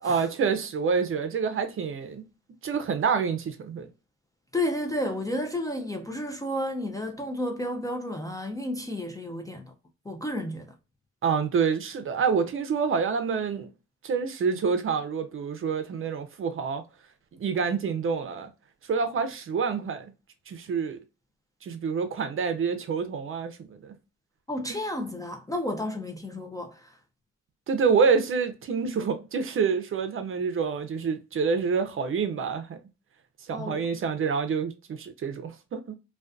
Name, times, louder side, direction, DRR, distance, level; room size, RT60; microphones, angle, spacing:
voice 1, 0.0-2.2 2.6-3.9 11.2-13.7 14.0-16.8 17.4-18.5 18.9-20.1 20.5-21.0 21.6-24.0 27.7-32.8 33.5-36.0, right 5 dB, 45° right, 0.5 m, -27 dB
voice 2, 4.5-9.7 10.1-10.7 24.5-26.9 33.5-33.8, left 1 dB, 10° left, 0.4 m, -32 dB
2.4 x 2.3 x 2.2 m
cardioid pair, 90°, 30 cm